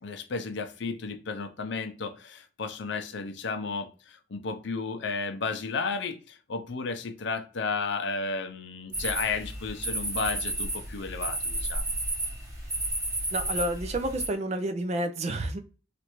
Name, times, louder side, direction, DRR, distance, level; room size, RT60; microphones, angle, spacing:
voice 1, 0.0-11.9, left 4 dB, 60° left, 0.5 m, -33 dB
sound 1, 8.9-14.3, right 1 dB, 15° right, 1.1 m, -32 dB
voice 2, 13.3-15.6, right 1 dB, 30° right, 0.4 m, -30 dB
3.1 x 2.5 x 2.9 m
head